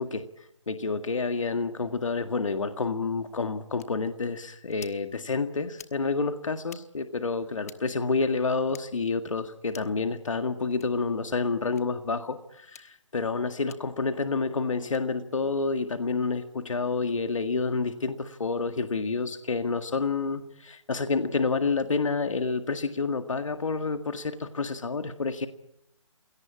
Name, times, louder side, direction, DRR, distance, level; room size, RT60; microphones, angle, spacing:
voice 1, 0.0-25.5, left 4 dB, 80° left, 8 dB, 1.9 m, -29 dB
sound 1, 3.8-3.9 4.7-5.0 5.7-6.0 6.6-6.8 7.6-7.8 8.7-8.9 9.7-10.0 10.7-10.9 11.7-11.8 12.7-12.9 13.7-13.8 14.8-15.0, left 8 dB, 30° left, 1.2 m, -48 dB
27.5 x 17.5 x 8.6 m, 0.79 s
hypercardioid pair, 170°, 16 cm